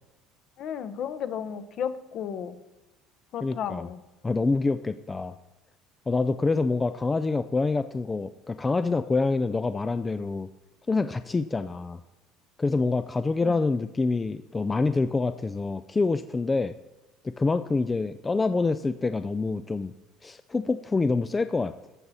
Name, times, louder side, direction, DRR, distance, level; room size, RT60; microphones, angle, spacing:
voice 1, 0.6-2.6 3.3-4.0 13.4-13.6, left 8 dB, 50° left, 11 dB, 0.8 m, -33 dB
voice 2, 3.4-3.9 4.2-5.3 6.1-10.5 10.9-12.0 12.6-16.7 17.2-19.9 20.2-21.7, left 3 dB, 15° left, 10 dB, 0.3 m, -26 dB
13.5 x 7.1 x 4.1 m, 1.0 s
cardioid pair, 130°, 0 cm